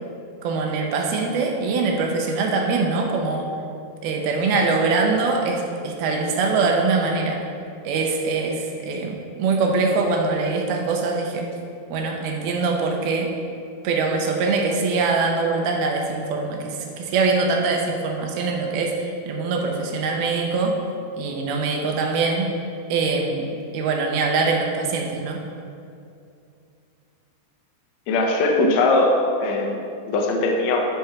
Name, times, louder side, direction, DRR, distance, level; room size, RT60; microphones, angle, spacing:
voice 1, 0.4-3.5 4.0-7.4 7.8-11.5 11.9-13.3 13.8-20.8 21.2-22.5 22.9-25.4, right 4 dB, 80° right, 1 dB, 2.8 m, -23 dB
voice 2, 28.1-29.8 30.1-30.8, left 2 dB, 85° left, 1 dB, 1.5 m, -20 dB
12.0 x 5.1 x 4.7 m, 2.5 s
omnidirectional pair, 4.4 m